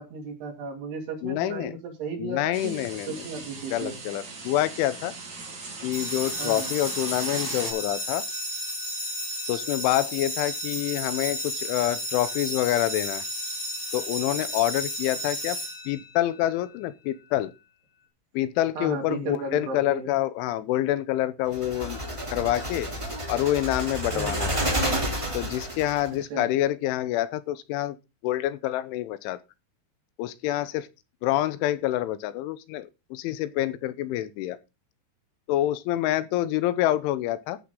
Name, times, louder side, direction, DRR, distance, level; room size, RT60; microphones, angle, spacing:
voice 1, 0.0-4.0 6.4-6.7 18.8-20.1 24.1-24.4 26.3-26.5, right 4 dB, 60° right, 4.4 m, -35 dB
voice 2, 1.2-1.8 2.2-3.2 3.7-5.1 5.8-8.2 9.5-13.2 13.9-15.6 15.9-17.5 18.3-22.0 22.3-22.9 23.3-24.7 25.3-28.0 28.2-29.4 30.2-30.9 31.2-34.6 35.5-37.6, left 14 dB, 85° left, 3.2 m, -27 dB
sound 1, 2.5-7.7, right 3 dB, 40° right, 5.4 m, -38 dB
sound 2, 5.9-16.3, equal, 70° left, 0.5 m, -33 dB
sound 3, 21.5-26.1, right 1 dB, 10° right, 2.2 m, -30 dB
15.0 x 7.3 x 3.8 m
omnidirectional pair, 5.5 m